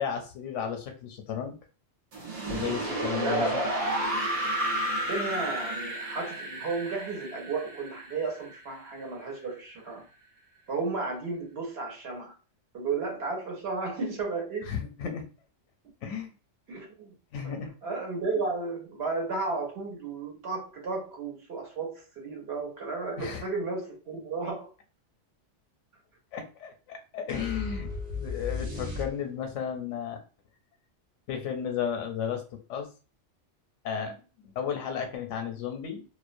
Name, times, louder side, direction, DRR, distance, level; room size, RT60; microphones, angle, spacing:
voice 1, 0.0-1.6 2.5-3.6 14.7-15.2 16.0-16.3 17.3-17.7 23.2-23.4 26.3-30.2 31.3-32.4 32.7-32.9 33.8-34.2 34.4-36.0, left 7 dB, 85° left, 0.9 m, -33 dB
sound 1, 2.1-9.0, right 1 dB, 45° right, 0.5 m, -32 dB
voice 2, 3.2-3.8 5.0-10.1 10.7-12.3 12.7-14.7 16.7-17.1 17.4-17.5 17.8-24.7, right 3 dB, 60° right, 1.0 m, -33 dB
sound 2, 27.3-29.6, left 4 dB, 90° right, 1.1 m, -35 dB
2.4 x 2.0 x 2.5 m
omnidirectional pair, 1.2 m